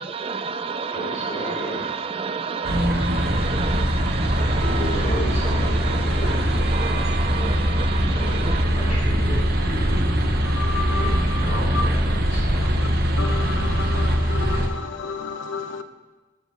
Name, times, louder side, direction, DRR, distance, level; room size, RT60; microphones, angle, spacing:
voice 1, 0.0-4.8 5.8-6.4 6.7-8.6, right 5 dB, 30° right, 9 dB, 0.4 m, -30 dB
voice 2, 0.9-1.8 4.5-7.1 8.1-10.3 10.7-12.8, equal, 40° left, -7 dB, 3.3 m, -33 dB
sound 1, 2.6-14.7, equal, 50° right, 0.9 m, -22 dB
voice 3, 10.4-11.4 11.7-11.8 12.8-12.9 13.2-15.8, left 4 dB, 75° left, 10 dB, 0.6 m, -31 dB
10.5 x 5.3 x 5.1 m, 1.3 s
head